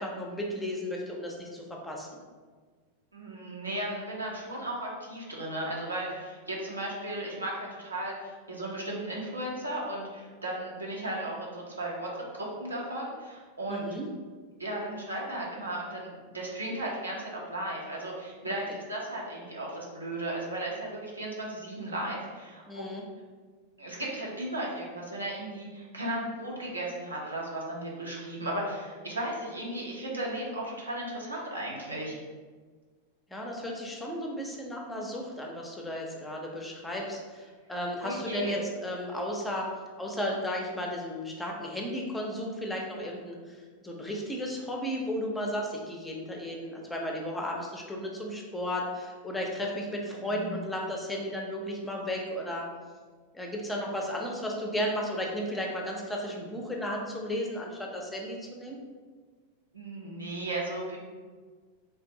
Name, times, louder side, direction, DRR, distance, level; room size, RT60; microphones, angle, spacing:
voice 1, 0.0-2.1 13.7-14.1 22.7-23.0 33.3-39.7 40.0-52.6 53.3-58.8, equal, 10° left, -1 dB, 0.5 m, -34 dB
voice 2, 3.1-13.9 14.6-22.6 23.8-32.2 38.0-38.5 50.2-50.6 59.7-61.0, right 1 dB, 75° right, -3 dB, 0.7 m, -35 dB
3.3 x 2.5 x 2.6 m, 1.5 s
figure-of-eight pair, 90°, 0 cm